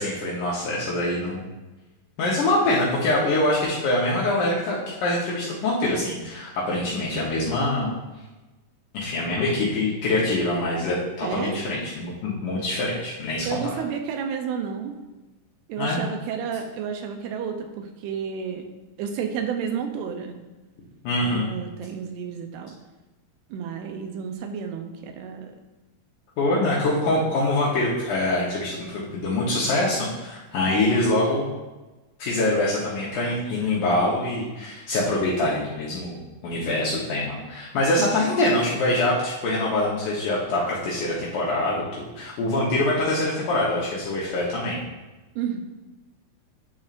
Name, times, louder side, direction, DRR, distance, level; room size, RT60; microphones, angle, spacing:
voice 1, 0.0-1.5 2.2-7.9 8.9-13.6 15.8-16.0 21.0-21.5 26.4-31.5 32.2-44.8, left 2 dB, 70° left, -6 dB, 2.1 m, -24 dB
voice 2, 11.2-11.6 13.5-14.9 15.7-18.6 19.0-20.4 21.2-22.7 23.5-25.5 30.7-31.1 38.0-38.4 45.4-45.6, right 7 dB, 90° right, 5 dB, 2.7 m, -31 dB
10.0 x 4.3 x 2.5 m, 1.1 s
omnidirectional pair, 4.6 m